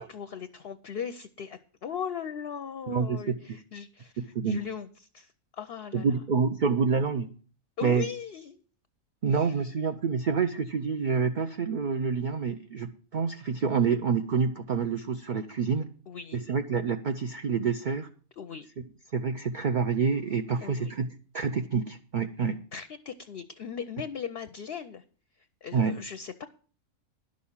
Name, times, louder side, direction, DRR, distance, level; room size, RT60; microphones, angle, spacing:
voice 1, 0.0-6.2 7.8-8.6 9.3-9.6 16.1-16.5 18.4-18.7 20.6-20.9 22.7-25.0 25.4-26.5, left 7 dB, 55° left, 11 dB, 0.7 m, -39 dB
voice 2, 2.9-3.4 4.2-4.6 5.9-7.3 7.8-8.1 9.2-15.9 16.3-18.1 19.1-22.6 25.7-25.9, right 5 dB, 50° right, 7 dB, 0.6 m, -27 dB
11.0 x 6.4 x 7.1 m, 0.41 s
omnidirectional pair, 1.5 m